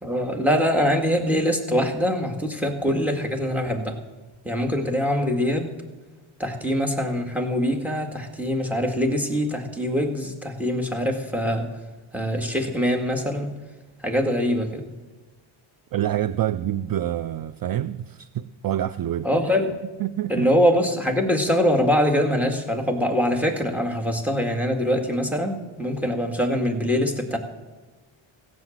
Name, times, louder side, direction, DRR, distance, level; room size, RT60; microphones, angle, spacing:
voice 1, 0.0-4.0 4.4-5.8 6.4-11.7 12.1-13.5 14.0-14.9 19.2-19.8 20.3-27.4, equal, 5° right, 4 dB, 2.0 m, -23 dB
voice 2, 15.9-19.3 20.0-20.5, right 12 dB, 50° right, 15 dB, 0.4 m, -27 dB
16.0 x 7.9 x 7.4 m, 1.3 s
cardioid pair, 100°, 49 cm